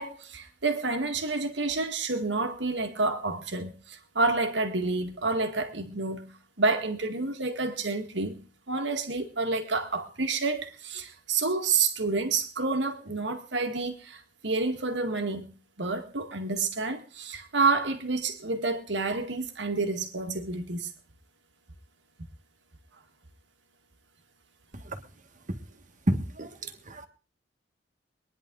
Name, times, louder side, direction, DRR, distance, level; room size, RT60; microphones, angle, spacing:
voice 1, 0.0-6.3 6.6-8.4 8.7-15.5 15.8-20.9, right 3 dB, 75° right, 1.9 m, -29 dB
voice 2, 26.1-27.1, right 1 dB, 45° right, 1.7 m, -30 dB
24.5 x 10.5 x 3.9 m
head